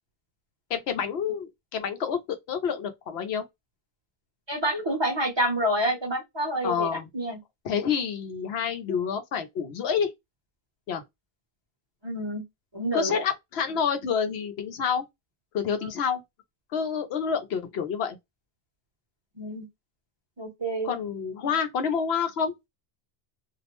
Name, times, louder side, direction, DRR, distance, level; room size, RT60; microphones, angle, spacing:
voice 1, 0.7-3.4 6.6-7.1 7.6-10.1 10.9-11.0 12.9-15.0 15.5-16.2 16.7-18.2 20.8-22.6, left 7 dB, 90° left, 0.9 m, -28 dB
voice 2, 4.5-7.4 12.0-12.4 12.7-13.2 19.4-19.7 20.4-20.9, right 1 dB, 30° right, 0.8 m, -28 dB
2.6 x 2.1 x 2.9 m
omnidirectional pair, 1.0 m